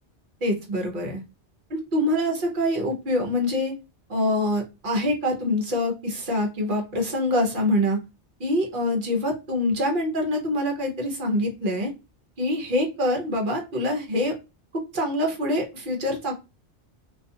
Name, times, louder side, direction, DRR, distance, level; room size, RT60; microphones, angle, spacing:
voice 1, 0.4-1.2 1.7-3.7 4.1-8.0 8.4-11.9 12.4-14.3 14.7-16.3, left 1 dB, 50° right, 2 dB, 0.9 m, -25 dB
2.4 x 2.4 x 2.6 m, 0.27 s
omnidirectional pair, 1.1 m